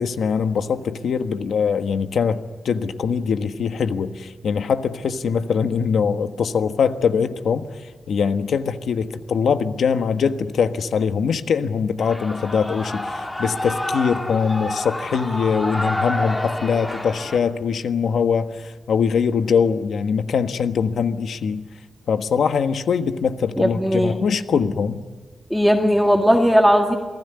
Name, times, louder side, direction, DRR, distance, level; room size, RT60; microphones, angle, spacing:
voice 1, 0.0-7.7 8.1-21.6 22.1-25.0, left 6 dB, 90° left, 9 dB, 1.4 m, -22 dB
Shout / Cheering, 12.0-17.4, left 1 dB, 15° left, 2.6 m, -28 dB
voice 2, 23.6-24.2 25.5-27.0, equal, ahead, 2 dB, 1.9 m, -17 dB
28.5 x 20.0 x 9.6 m, 1.4 s
wide cardioid pair, 145°, 0 cm